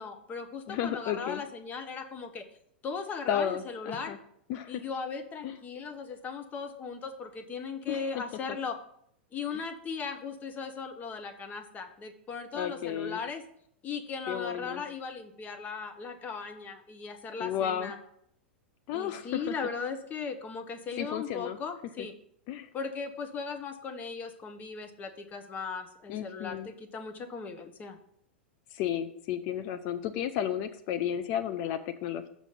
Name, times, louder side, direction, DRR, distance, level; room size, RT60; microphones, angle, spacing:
voice 1, 0.0-2.4 2.8-4.2 4.7-8.8 9.3-13.4 13.8-18.0 18.9-22.1 22.7-28.0, left 5 dB, 30° left, 7 dB, 0.9 m, -38 dB
voice 2, 0.7-1.4 3.3-4.2 4.5-4.8 5.4-5.6 7.9-8.2 12.5-13.2 14.3-14.8 17.4-17.9 18.9-19.6 21.0-21.6 22.5-22.7 26.1-26.7 28.7-32.3, left 10 dB, 50° left, 11 dB, 0.5 m, -33 dB
6.2 x 5.2 x 5.6 m, 0.69 s
hypercardioid pair, 100°, 6 cm